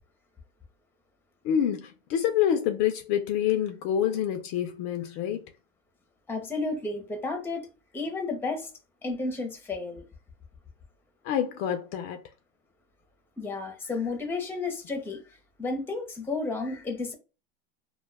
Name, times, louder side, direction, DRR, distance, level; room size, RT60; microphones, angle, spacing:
voice 1, 1.4-5.4 11.2-12.2, left 9 dB, 50° left, 0.4 m, -27 dB
voice 2, 6.3-7.7 7.9-8.7 9.0-10.0 13.4-15.2 15.6-17.1, left 3 dB, 5° left, 0.6 m, -32 dB
2.2 x 2.2 x 3.2 m
supercardioid pair, 125°, 29 cm